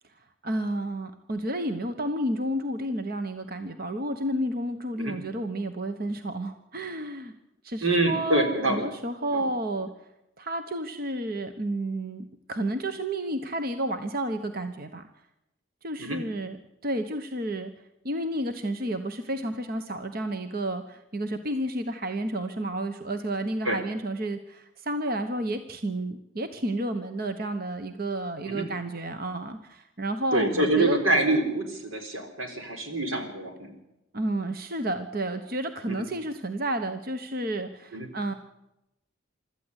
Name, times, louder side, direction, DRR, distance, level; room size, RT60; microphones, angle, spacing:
voice 1, 0.2-7.3 7.6-9.9 10.4-15.1 15.8-16.6 16.8-17.7 18.0-31.0 34.1-38.3, right 1 dB, 45° right, 7 dB, 1.1 m, -31 dB
voice 2, 7.8-8.8 9.3-9.4 16.0-16.2 23.6-23.8 28.4-28.6 30.3-33.8 35.9-36.0 37.9-38.1, right 2 dB, 90° right, 5 dB, 4.2 m, -26 dB
25.5 x 13.5 x 8.2 m, 0.90 s
head